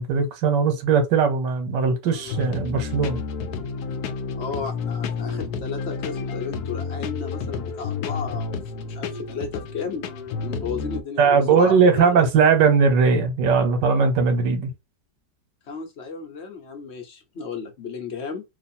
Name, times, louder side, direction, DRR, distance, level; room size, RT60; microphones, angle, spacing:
voice 1, 0.0-3.2 11.2-14.7, right 5 dB, 80° right, 1.5 m, -19 dB
sound 1, 2.1-11.0, left 5 dB, 75° left, 1.1 m, -30 dB
voice 2, 4.4-10.1 10.4-12.2 15.7-18.4, left 5 dB, 50° left, 0.9 m, -33 dB
3.0 x 2.5 x 4.2 m
omnidirectional pair, 1.9 m